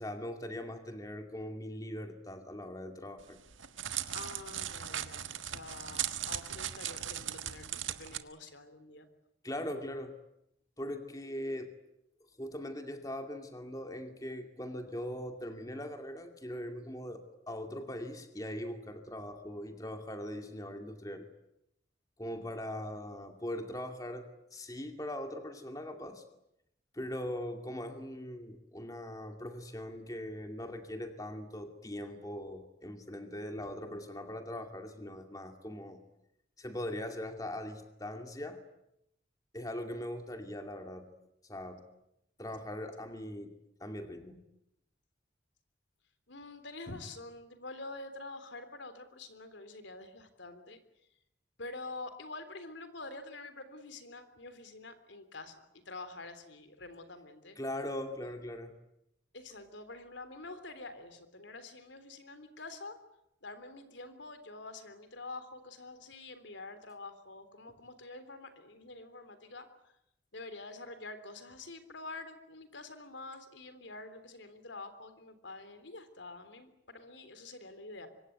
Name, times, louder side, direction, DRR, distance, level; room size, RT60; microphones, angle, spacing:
voice 1, 0.0-3.4 9.4-10.1 10.8-11.7 12.4-21.3 22.2-26.2 26.9-36.0 36.6-38.6 39.5-41.1 41.4-41.8 42.4-43.5 43.8-44.4 57.6-58.8, left 1 dB, 20° left, 5 dB, 2.4 m, -41 dB
Crackle, 3.2-8.2, right 10 dB, 90° right, 1.6 m, -38 dB
voice 2, 4.1-9.1 46.3-50.8 51.6-57.6 58.2-58.3 59.3-63.0 63.4-69.7 70.3-78.1, left 2 dB, 75° left, 10 dB, 3.4 m, -47 dB
25.5 x 24.0 x 9.3 m, 0.82 s
head